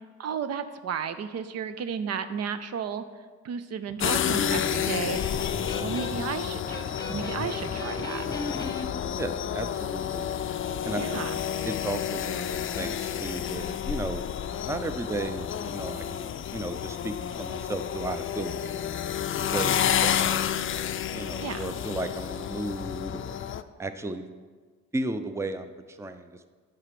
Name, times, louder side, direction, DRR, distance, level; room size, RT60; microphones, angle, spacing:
voice 1, 0.2-3.0 3.4-5.2 5.8-8.2 11.0-11.4 21.4-21.7, right 7 dB, 55° right, 11 dB, 0.5 m, -33 dB
Electric guitar, 3.9-8.9, left 2 dB, 15° left, 1.0 m, -36 dB
sound 1, 4.0-23.6, left 9 dB, 45° left, 0.5 m, -30 dB
voice 2, 9.2-10.3 10.8-11.2 11.6-14.2 14.6-18.7 19.5-19.7 20.0-20.6 21.1-23.4 23.8-24.2 24.9-26.5, right 2 dB, 10° right, 9 dB, 0.5 m, -34 dB
7.8 x 6.0 x 5.9 m, 1.5 s
cardioid pair, 90°, 30 cm